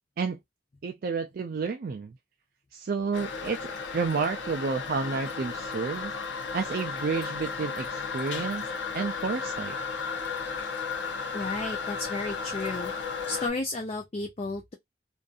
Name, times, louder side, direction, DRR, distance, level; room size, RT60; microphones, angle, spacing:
voice 1, 0.8-2.2 2.7-6.1 6.5-8.7 8.9-9.7, right 5 dB, 50° right, 0.4 m, -30 dB
Toilet flush, 3.1-13.5, left 5 dB, 75° left, 0.6 m, -34 dB
voice 2, 11.3-12.9 13.3-14.7, left 2 dB, 35° left, 0.4 m, -33 dB
2.6 x 2.5 x 2.3 m
head